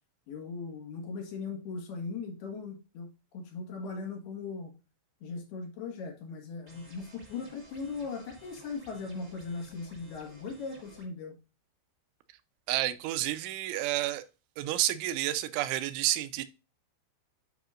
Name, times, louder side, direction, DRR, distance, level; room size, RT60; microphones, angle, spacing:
voice 1, 0.3-4.7 5.2-11.4, left 4 dB, 65° left, 3.4 m, -39 dB
sound 1, 6.7-11.1, right 1 dB, 30° right, 1.3 m, -55 dB
voice 2, 12.7-14.3 14.6-16.4, right 14 dB, 90° right, 3.0 m, -30 dB
10.5 x 5.0 x 2.4 m
omnidirectional pair, 5.3 m